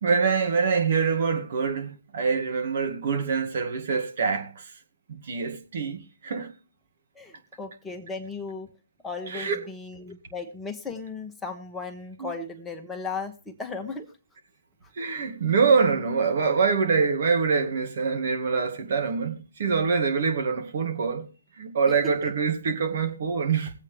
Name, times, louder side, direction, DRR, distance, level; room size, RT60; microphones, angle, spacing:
voice 1, 0.0-4.7 5.1-6.5 9.3-9.6 12.2-12.3 15.0-21.3 21.6-23.7, right 5 dB, 55° right, 2.4 m, -25 dB
voice 2, 7.1-8.7 9.0-14.1 21.9-22.3, left 4 dB, 10° left, 1.1 m, -36 dB
20.5 x 8.2 x 3.4 m
figure-of-eight pair, 140°, 0 cm